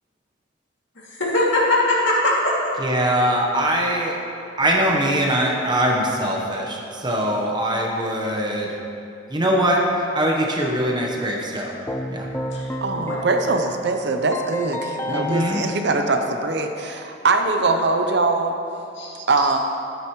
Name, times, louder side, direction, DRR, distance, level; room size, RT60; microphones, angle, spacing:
voice 1, 1.0-2.7 12.5-12.7 13.1-13.2 18.9-19.5, left 1 dB, 70° left, -6 dB, 2.6 m, -21 dB
voice 2, 2.8-4.2 4.6-8.8 9.3-11.8 12.1-12.3 15.1-15.6, right 1 dB, 25° right, -1 dB, 1.1 m, -22 dB
Keyboard (musical), 11.9-16.8, left 1 dB, 10° left, 0.4 m, -31 dB
voice 3, 12.8-18.6 19.3-19.6, right 3 dB, 60° right, 5 dB, 0.8 m, -22 dB
13.5 x 9.2 x 3.2 m, 2.7 s
head